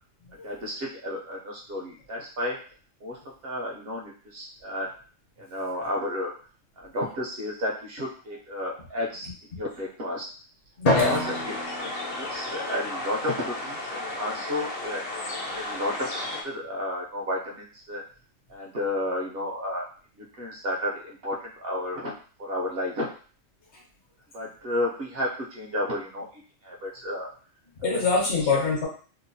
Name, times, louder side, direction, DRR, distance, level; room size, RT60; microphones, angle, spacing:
voice 1, 0.4-2.6 3.0-3.2 3.4-4.9 5.4-6.3 6.8-9.3 9.5-10.3 11.0-11.9 12.2-15.0 15.5-18.0 18.5-19.8 20.2-22.1 22.4-23.1 24.3-26.2 26.6-27.3 28.5-28.6, left 1 dB, 60° right, -2 dB, 0.7 m, -32 dB
voice 2, 10.8-11.2 23.7-23.8 27.8-28.9, left 4 dB, 65° left, -2 dB, 1.2 m, -24 dB
sound 1, 10.9-16.4, left 2 dB, 85° left, 1.0 m, -34 dB
Drum, 10.9-13.1, left 1 dB, 45° left, 0.5 m, -28 dB
2.8 x 2.1 x 2.6 m, 0.40 s
omnidirectional pair, 1.3 m